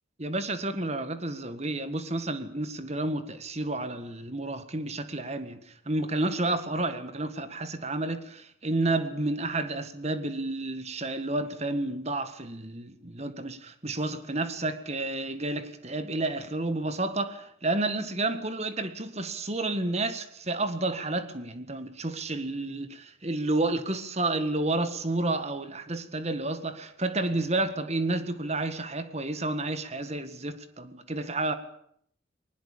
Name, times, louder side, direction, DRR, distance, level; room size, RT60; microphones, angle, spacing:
voice 1, 0.2-30.6 31.1-31.6, right 2 dB, 30° right, 11 dB, 1.8 m, -30 dB
21.0 x 20.0 x 8.6 m, 0.68 s
head